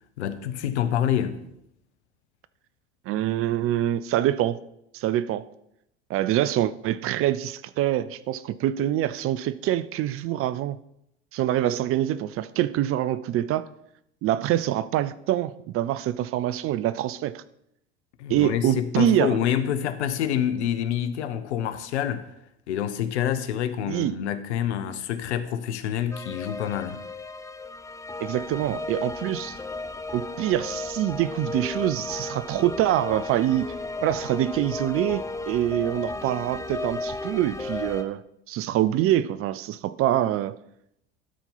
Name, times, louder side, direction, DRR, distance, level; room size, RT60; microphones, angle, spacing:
voice 1, 0.2-1.4 18.2-22.3 22.7-27.0, left 10 dB, 75° left, 0.9 m, -27 dB
voice 2, 3.1-4.6 4.9-5.5 6.1-10.8 11.3-13.7 14.2-17.4 18.3-19.4 23.9-24.1 28.2-29.6 30.1-33.7 34.0-38.2 38.5-40.5, right 12 dB, 40° right, 0.5 m, -25 dB
sound 1, 26.1-38.0, left 2 dB, 10° left, 0.7 m, -34 dB
12.5 x 4.4 x 5.6 m
hypercardioid pair, 75°, 34 cm